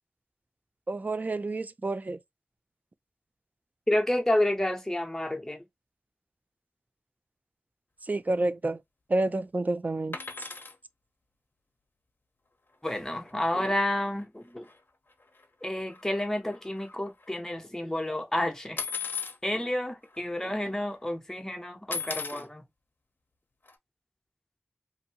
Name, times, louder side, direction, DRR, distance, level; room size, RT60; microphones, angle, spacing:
voice 1, 0.9-2.2 8.1-8.8 9.1-10.2, right 2 dB, 45° right, 0.3 m, -29 dB
voice 2, 3.9-5.6 12.8-14.7 15.6-18.8 19.4-22.6, left 1 dB, 10° left, 0.8 m, -30 dB
sound 1, 10.1-10.8 12.9-13.0 13.3-13.5 13.7-13.8 14.6-14.8 15.2-15.6 15.9-17.4 18.8-19.4 20.1-20.2 20.5-20.9 21.9-22.4 23.7-23.8, left 5 dB, 55° left, 0.6 m, -36 dB
2.6 x 2.6 x 2.7 m
wide cardioid pair, 65°, 4 cm